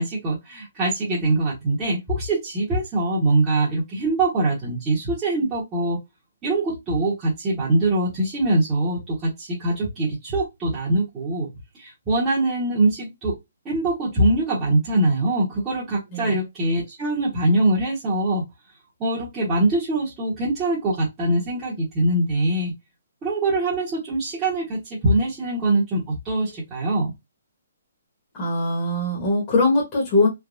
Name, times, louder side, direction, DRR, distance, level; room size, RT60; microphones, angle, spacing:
voice 1, 0.0-6.0 6.4-11.5 11.7-13.4 13.6-18.4 19.0-22.7 23.2-27.1, right 2 dB, 15° right, 1.1 m, -23 dB
voice 2, 28.3-30.3, left 2 dB, 25° left, 1.2 m, -21 dB
3.4 x 2.3 x 2.5 m
hypercardioid pair, 150°, 0 cm